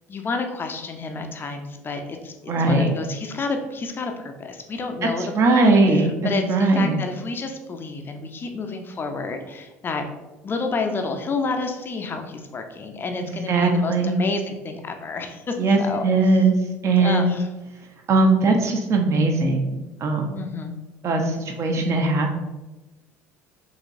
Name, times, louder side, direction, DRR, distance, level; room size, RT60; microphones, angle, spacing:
voice 1, 0.1-10.0 10.4-16.4 17.0-17.5 20.3-20.7, left 3 dB, 25° left, 5 dB, 0.5 m, -30 dB
voice 2, 2.5-2.9 5.3-6.1 6.5-7.0 13.5-14.3 15.6-16.6 16.8-17.3 18.1-20.4 21.0-22.4, right 3 dB, 40° right, 3 dB, 0.8 m, -19 dB
5.1 x 3.0 x 2.6 m, 1.1 s
figure-of-eight pair, 65°, 8 cm